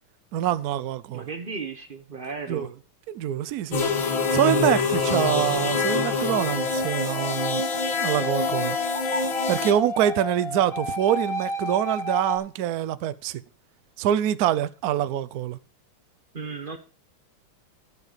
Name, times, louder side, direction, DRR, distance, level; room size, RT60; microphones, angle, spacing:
voice 1, 0.3-1.3 2.5-2.7 3.1-3.9 4.3-8.8 9.5-13.4 14.0-15.6, right 11 dB, 80° right, 0.8 m, -25 dB
voice 2, 1.1-2.7 16.3-16.8, right 4 dB, 35° right, 0.8 m, -35 dB
sound 1, 3.7-9.7, left 4 dB, 65° left, 2.2 m, -26 dB
sound 2, 6.3-12.4, left 2 dB, 40° left, 0.9 m, -32 dB
12.0 x 6.6 x 5.1 m
omnidirectional pair, 2.4 m